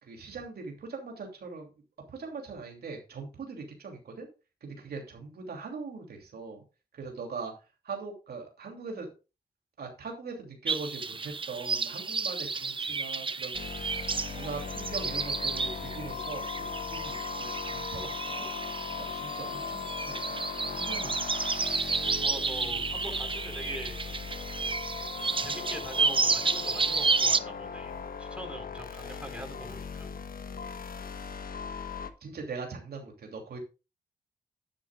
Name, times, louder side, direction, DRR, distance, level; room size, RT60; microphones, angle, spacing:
voice 1, 0.0-1.7 2.1-4.3 4.6-6.6 6.9-7.5 7.8-9.1 9.8-13.5 14.2-16.4 16.7-17.3 17.5-18.5 19.0-21.2 32.2-33.6, right 4 dB, 70° right, 1 dB, 2.9 m, -41 dB
sound 1, 10.7-27.4, right 4 dB, 30° right, 0.6 m, -31 dB
sound 2, 13.5-32.1, left 6 dB, 60° left, 1.2 m, -38 dB
voice 2, 22.2-24.0 25.4-27.9 28.2-30.1, equal, 5° right, 3 dB, 4.4 m, -42 dB
11.0 x 9.8 x 2.4 m, 0.29 s
cardioid pair, 50°, 17 cm